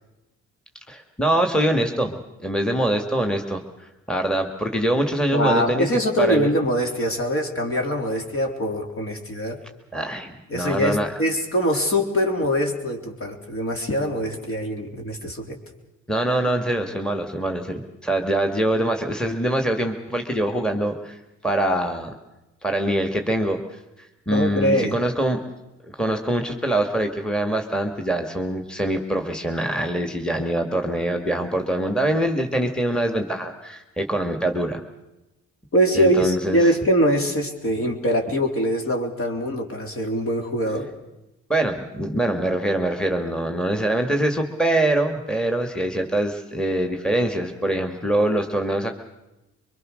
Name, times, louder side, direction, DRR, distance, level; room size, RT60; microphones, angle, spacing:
voice 1, 0.9-2.1 2.4-5.9 6.2-6.5 9.9-11.1 16.1-22.1 22.6-23.8 24.3-25.4 26.0-34.8 35.9-36.6 41.5-49.0, right 1 dB, 5° left, 4 dB, 2.1 m, -24 dB
voice 2, 5.3-9.6 10.5-15.6 24.3-25.0 35.7-40.9, equal, 45° left, 3 dB, 3.7 m, -23 dB
24.0 x 22.0 x 6.5 m, 0.97 s
cardioid pair, 90°, 30 cm